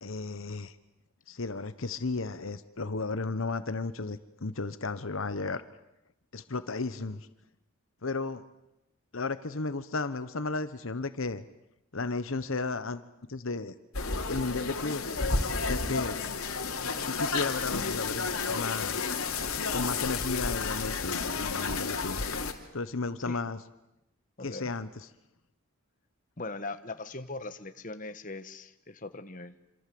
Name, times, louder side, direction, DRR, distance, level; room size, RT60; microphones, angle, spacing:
voice 1, 0.0-0.8 1.3-5.6 6.3-7.3 8.0-8.4 9.1-11.4 11.9-13.0 13.3-13.7 14.3-15.1 15.6-16.2 17.0-19.1 19.7-22.3 22.7-23.6 24.4-25.1, left 3 dB, 70° left, 12 dB, 1.1 m, -34 dB
sound 1, 13.9-22.5, left 4 dB, 85° left, 3.0 m, -31 dB
voice 2, 24.4-24.7 26.4-29.5, left 2 dB, 40° left, 9 dB, 1.4 m, -40 dB
27.0 x 26.5 x 7.8 m, 0.88 s
head